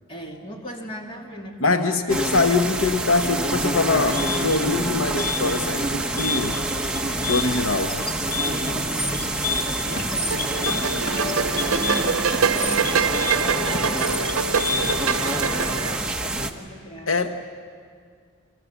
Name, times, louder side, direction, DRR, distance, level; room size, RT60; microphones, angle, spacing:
voice 1, 0.1-2.2 8.4-13.8 14.2-17.1, equal, 25° left, 1 dB, 2.5 m, -37 dB
voice 2, 1.6-6.6 7.2-8.0 17.1-17.4, left 3 dB, 75° left, 7 dB, 1.0 m, -23 dB
sound 1, 2.1-16.5, right 2 dB, 5° right, 1.1 m, -27 dB
sound 2, 4.1-15.2, left 4 dB, 40° left, 2.3 m, -30 dB
sound 3, 10.3-16.0, right 6 dB, 90° right, 0.7 m, -25 dB
29.5 x 24.5 x 7.1 m, 2.1 s
head